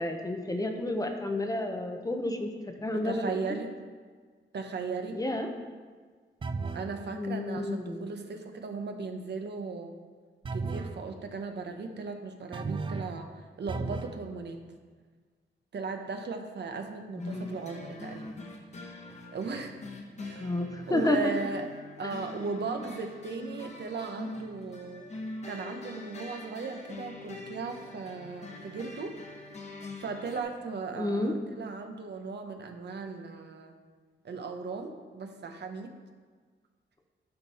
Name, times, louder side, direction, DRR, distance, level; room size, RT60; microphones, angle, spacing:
voice 1, 0.0-3.4 5.2-5.5 7.1-8.1 17.2-17.6 20.4-21.5 22.0-22.1 31.0-31.3, left 1 dB, 20° left, 4 dB, 0.7 m, -31 dB
voice 2, 2.9-3.8 4.5-5.2 6.7-9.9 10.5-13.3 13.6-14.6 15.7-18.3 19.3-19.8 20.2-20.5 20.9-21.7 22.0-25.1 25.5-29.2 30.0-33.7 34.2-35.9, right 4 dB, 60° right, 5 dB, 0.9 m, -37 dB
sound 1, 6.4-6.9 10.4-11.0 12.5-13.2 13.7-14.2, right 4 dB, 25° right, 0.4 m, -34 dB
sound 2, 17.2-30.4, left 2 dB, 35° left, 1.1 m, -44 dB
11.5 x 5.7 x 4.2 m, 1.6 s
wide cardioid pair, 165°, 20 cm